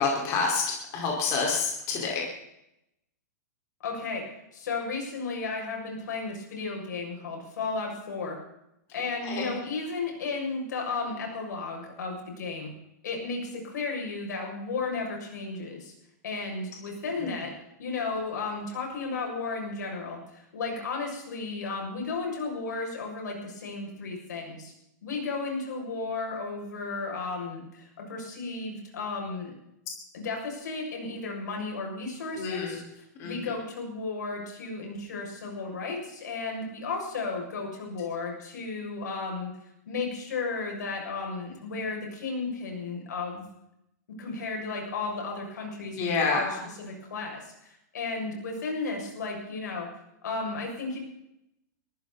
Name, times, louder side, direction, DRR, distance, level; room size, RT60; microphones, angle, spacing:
voice 1, 0.0-2.3 9.2-9.6 32.3-32.8 33.2-33.5 45.9-46.6, left 4 dB, 30° left, -1 dB, 4.9 m, -28 dB
voice 2, 3.8-4.2 4.5-8.4 8.9-12.7 13.0-15.9 16.2-17.5 17.8-24.7 25.0-29.5 30.1-32.8 33.2-39.5 39.9-43.4 44.2-46.5 46.8-49.9 50.2-51.0, left 4 dB, 80° left, 1 dB, 6.9 m, -34 dB
21.0 x 15.0 x 4.2 m, 0.83 s
hypercardioid pair, 160°, 10 cm